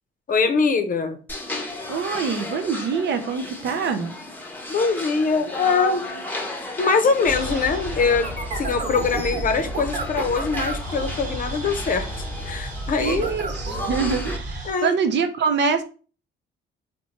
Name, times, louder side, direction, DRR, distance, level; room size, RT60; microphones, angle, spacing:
voice 1, 0.3-1.2 4.7-6.0 6.8-12.1 12.5-13.3 14.6-15.0, left 4 dB, 45° left, 0.6 m, -22 dB
sound 1, 1.3-14.4, left 2 dB, 10° left, 0.8 m, -35 dB
voice 2, 1.9-4.1 13.0-15.8, right 5 dB, 60° right, 0.6 m, -24 dB
sound 2, 7.2-14.7, right 2 dB, 40° right, 1.2 m, -31 dB
4.2 x 2.1 x 2.9 m
cardioid pair, 90°, 20 cm